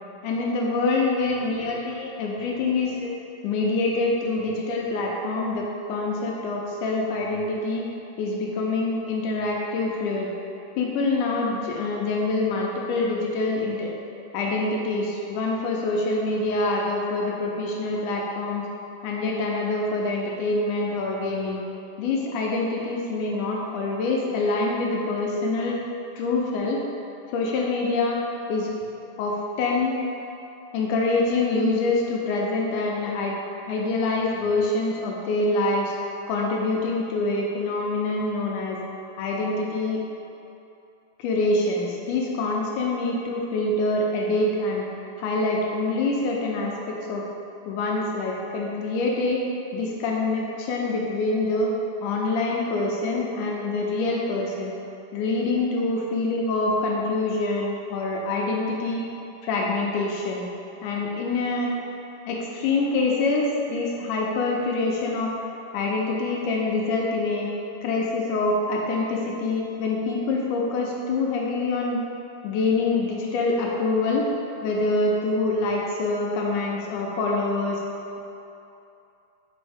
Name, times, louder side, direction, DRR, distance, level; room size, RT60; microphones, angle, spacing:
voice 1, 0.2-3.1 3.4-7.9 8.2-10.3 10.8-13.9 14.3-18.7 19.0-21.6 22.0-25.8 26.2-26.8 27.3-28.2 28.5-28.7 29.2-29.9 30.7-33.4 33.7-35.9 36.3-38.8 39.2-40.0 41.2-44.9 45.2-47.3 47.7-49.4 49.7-51.7 52.0-54.7 55.1-59.0 59.4-60.5 60.8-61.7 62.3-65.3 65.7-67.5 67.8-72.0 72.4-74.3 74.6-77.8, left 3 dB, 80° left, -2 dB, 2.0 m, -25 dB
5.4 x 5.2 x 3.3 m, 2.8 s
omnidirectional pair, 3.7 m